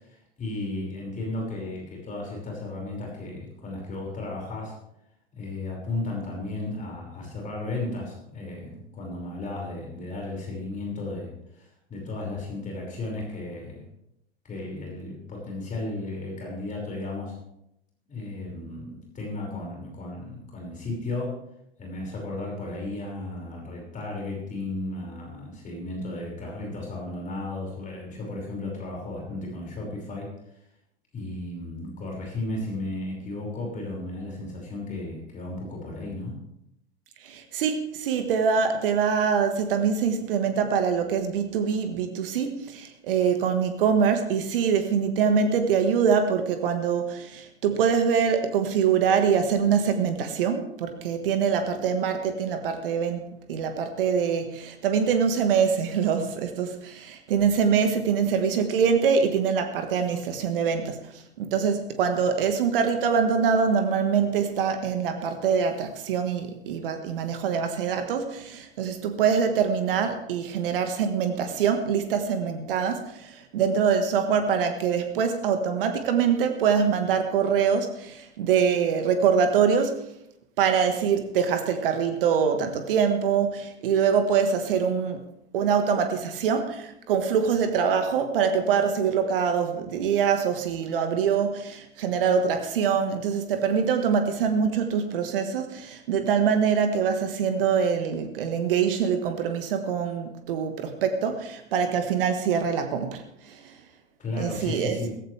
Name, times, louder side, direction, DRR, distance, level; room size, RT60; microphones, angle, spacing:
voice 1, 0.0-4.7 5.3-13.9 14.4-17.4 18.1-21.4 21.8-30.3 31.1-36.4 104.2-105.1, left 2 dB, 25° left, 5.7 m, -34 dB
voice 2, 37.2-80.0 80.6-85.3 85.5-103.7 104.4-105.0, right 6 dB, 60° right, 1.6 m, -24 dB
16.5 x 15.5 x 3.4 m
figure-of-eight pair, 90°, 32 cm